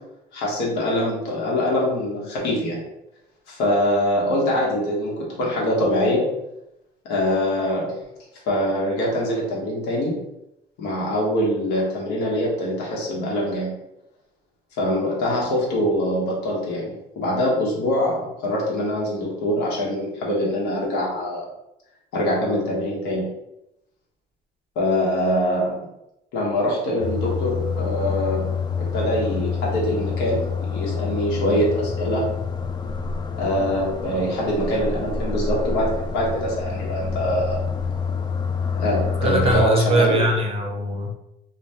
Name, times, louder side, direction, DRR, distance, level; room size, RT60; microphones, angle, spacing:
voice 1, 0.3-2.8 3.5-6.3 7.0-7.9 8.5-10.2 10.8-13.8 14.7-21.5 22.1-23.3 24.8-25.8 26.3-28.5 28.8-32.3 33.3-37.6 38.7-40.2, equal, 85° left, -4 dB, 1.0 m, -24 dB
sound 1, 27.0-39.7, left 5 dB, 25° left, 0.3 m, -27 dB
voice 2, 39.2-41.1, right 1 dB, 35° right, 2 dB, 0.5 m, -21 dB
2.6 x 2.2 x 3.3 m, 0.87 s
cardioid pair, 110°, 17 cm